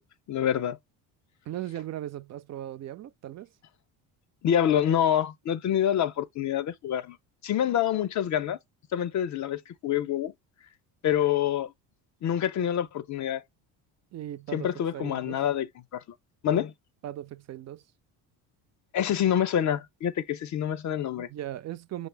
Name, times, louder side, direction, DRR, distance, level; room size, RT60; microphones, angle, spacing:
voice 1, 0.3-0.8 4.4-7.2 7.4-8.6 8.9-10.3 11.0-11.7 12.2-13.4 14.5-16.0 16.4-16.7 18.9-21.3, left 10 dB, 40° left, 0.6 m, -26 dB
voice 2, 1.5-3.5 14.1-15.4 17.0-17.8 21.2-22.1, right 12 dB, 40° right, 0.4 m, -38 dB
5.9 x 2.0 x 3.2 m
supercardioid pair, 90°, 45 cm